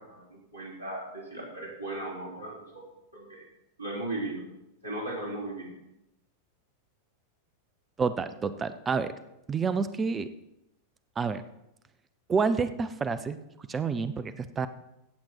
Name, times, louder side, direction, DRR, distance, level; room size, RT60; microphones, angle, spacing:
voice 1, 0.0-2.8 3.1-3.4 3.8-4.4 4.8-5.7, right 2 dB, 90° left, -4 dB, 4.0 m, -37 dB
voice 2, 8.0-9.1 9.5-10.3 11.2-11.4 12.3-13.4 13.7-14.7, right 5 dB, 20° right, 13 dB, 0.7 m, -28 dB
16.0 x 7.7 x 4.5 m, 0.88 s
figure-of-eight pair, 90°, 0 cm